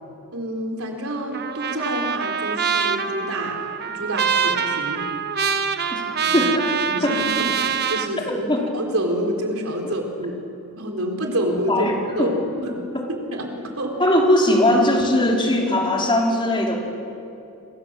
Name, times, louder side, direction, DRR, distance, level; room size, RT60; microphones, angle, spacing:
voice 1, 0.3-3.6 3.8-5.0 6.2-6.4 6.9-8.5 8.7-10.4 10.8-11.9 12.2-12.8 13.3-14.0, right 1 dB, 70° right, 2 dB, 4.4 m, -28 dB
Trumpet, 1.3-8.1, right 7 dB, 50° right, 1.2 m, -24 dB
voice 2, 6.3-6.7 7.0-7.2 8.5-8.7 11.7-12.3 12.9-13.1 14.0-16.8, left 1 dB, 25° left, -1 dB, 4.3 m, -19 dB
27.0 x 25.5 x 7.7 m, 2.7 s
head